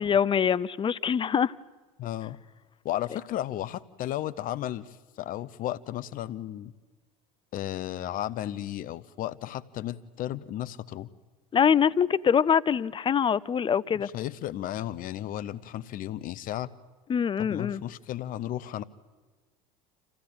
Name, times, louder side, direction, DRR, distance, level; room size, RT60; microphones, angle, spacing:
voice 1, 0.0-1.5 11.5-14.1 17.1-17.8, left 7 dB, 30° left, 20 dB, 0.6 m, -24 dB
voice 2, 2.0-2.4 2.8-6.7 7.5-11.1 13.9-16.7 17.4-18.8, left 13 dB, 50° left, 17 dB, 0.9 m, -34 dB
27.0 x 15.5 x 8.9 m, 1.3 s
hypercardioid pair, 75°, 18 cm